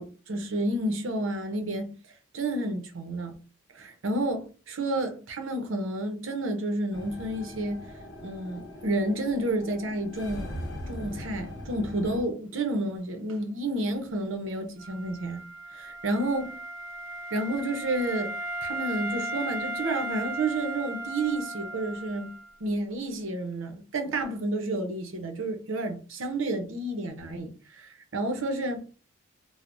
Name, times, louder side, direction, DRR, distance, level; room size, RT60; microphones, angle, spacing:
voice 1, 0.0-1.9 2.3-3.3 3.7-7.8 8.2-10.5 10.9-15.4 15.7-16.5 17.3-18.3 18.6-22.3 22.6-28.8, right 1 dB, 75° right, 0.7 m, -30 dB
sound 1, 6.9-12.2, left 1 dB, 70° left, 0.7 m, -40 dB
Wind instrument woodwind instrument, 14.8-22.5, right 1 dB, 45° right, 1.0 m, -36 dB
3.2 x 2.0 x 2.5 m
head